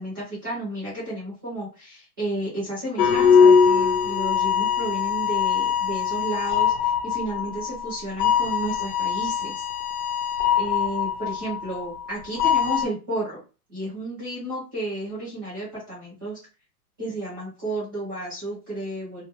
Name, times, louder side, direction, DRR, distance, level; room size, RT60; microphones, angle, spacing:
voice 1, 0.0-9.6 10.5-13.4 13.7-16.4 17.0-19.2, right 1 dB, 15° right, -8 dB, 0.5 m, -32 dB
sound 1, 3.0-12.1 12.4-12.9, left 7 dB, 85° left, 0.7 m, -22 dB
2.4 x 2.1 x 2.8 m, 0.33 s
hypercardioid pair, 170°, 46 cm